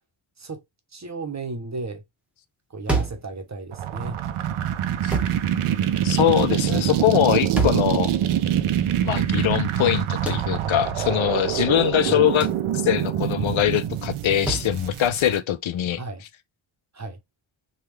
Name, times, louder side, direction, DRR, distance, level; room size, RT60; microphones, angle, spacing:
voice 1, 0.9-2.0 2.7-4.2 12.1-12.3 16.0-16.2 16.9-17.2, right 3 dB, 35° right, 0.8 m, -34 dB
sound 1, 2.9-3.3 5.1-5.4 7.6-7.9 10.3-10.5 12.4-12.6 14.5-14.7, right 3 dB, 5° right, 0.9 m, -26 dB
sound 2, 3.7-15.4, right 10 dB, 85° right, 0.6 m, -25 dB
voice 2, 6.0-8.2 9.0-12.5 12.8-16.0, left 11 dB, 70° left, 0.6 m, -22 dB
3.4 x 2.3 x 3.1 m
cardioid pair, 65°, 49 cm